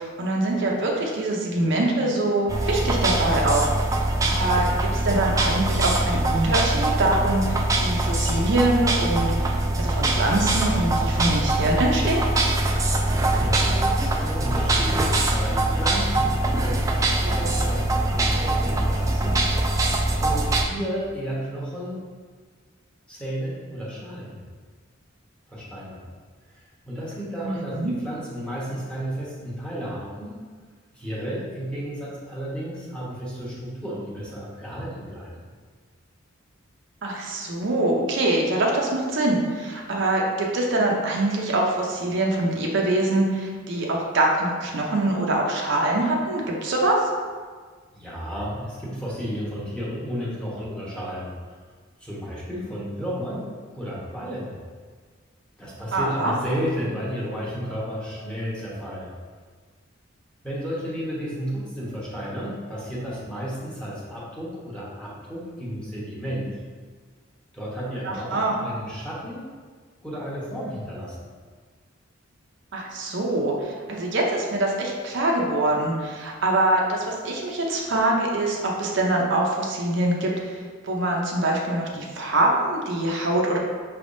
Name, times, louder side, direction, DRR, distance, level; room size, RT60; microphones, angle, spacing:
voice 1, 0.0-3.7 3.9-12.3 27.4-27.9 37.0-47.1 55.9-56.3 68.0-68.5 72.7-80.6 80.8-83.6, right 2 dB, 60° right, -1 dB, 0.6 m, -24 dB
sound 1, 2.5-20.7, right 1 dB, 15° right, 0.3 m, -23 dB
voice 2, 13.3-19.7 20.2-22.0 23.1-24.4 25.5-26.0 26.9-30.3 30.9-35.3 47.9-51.3 52.0-54.6 55.6-59.1 60.4-66.5 67.5-69.5 70.0-71.2, equal, 5° left, -7 dB, 1.0 m, -32 dB
5.6 x 3.4 x 2.6 m, 1.5 s
head